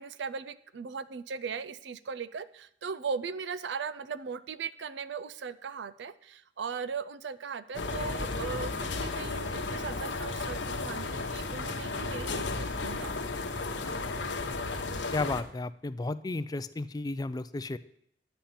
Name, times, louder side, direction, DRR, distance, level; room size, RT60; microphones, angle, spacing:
voice 1, 0.0-13.1 13.4-13.5, right 5 dB, 70° right, 14 dB, 0.5 m, -38 dB
sound 1, 7.7-15.4, left 3 dB, 85° left, 1.0 m, -34 dB
voice 2, 15.1-17.8, left 2 dB, 20° left, 14 dB, 0.4 m, -33 dB
10.0 x 7.0 x 5.8 m, 0.71 s
head